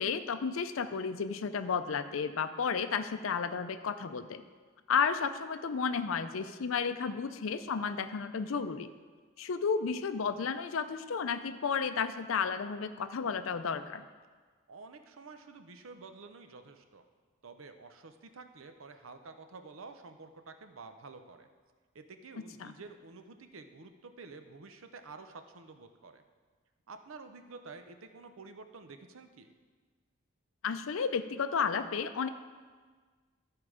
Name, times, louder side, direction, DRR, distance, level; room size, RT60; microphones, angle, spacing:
voice 1, 0.0-4.4 4.9-8.9 9.4-14.0 22.6-22.7 30.6-32.3, left 6 dB, 75° left, 11 dB, 0.5 m, -32 dB
voice 2, 14.7-17.0 17.4-21.5 21.9-26.2 26.9-29.5, right 4 dB, 75° right, 7 dB, 0.7 m, -50 dB
13.0 x 4.8 x 4.9 m, 1.5 s
head